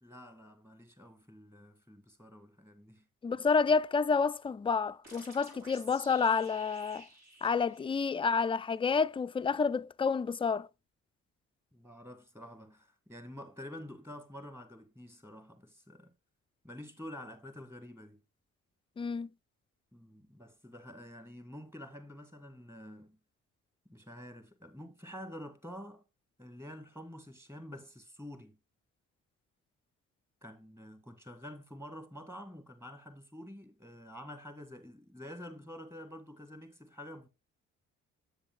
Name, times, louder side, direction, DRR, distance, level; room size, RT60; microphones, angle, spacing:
voice 1, 0.0-3.1 11.7-16.1 16.6-18.2 19.9-23.2 23.9-26.0 26.4-28.6 30.4-37.3, left 1 dB, 10° right, 1.7 m, -48 dB
voice 2, 3.2-7.1 7.4-10.7 19.0-19.3, left 5 dB, 20° left, 0.3 m, -29 dB
sound 1, 5.0-8.5, right 1 dB, 80° right, 4.7 m, -53 dB
7.6 x 6.9 x 3.6 m
cardioid pair, 90°, 30 cm